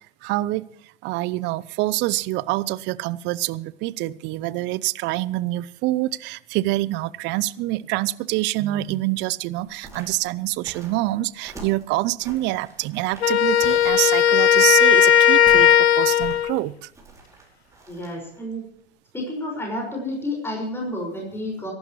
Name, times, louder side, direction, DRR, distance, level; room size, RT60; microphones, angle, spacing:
voice 1, 0.2-0.7 1.0-16.9, right 17 dB, 35° right, 19 dB, 0.7 m, -26 dB
sound 1, 9.7-18.5 18.8-18.9, right 2 dB, 10° right, 4.8 m, -44 dB
Wind instrument woodwind instrument, 13.2-16.6, left 9 dB, 85° left, 0.6 m, -16 dB
voice 2, 17.9-18.6 19.1-21.7, left 1 dB, 5° left, 0 dB, 5.6 m, -30 dB
25.0 x 12.0 x 3.2 m, 0.67 s
hypercardioid pair, 105°, 32 cm